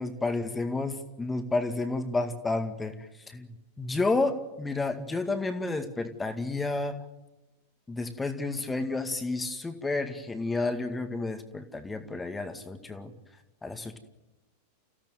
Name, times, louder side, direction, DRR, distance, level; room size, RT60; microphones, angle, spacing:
voice 1, 0.0-7.0 7.9-13.1 13.6-14.0, left 3 dB, 10° left, 8 dB, 2.1 m, -31 dB
28.5 x 16.5 x 9.4 m, 1.0 s
figure-of-eight pair, 90°, 0 cm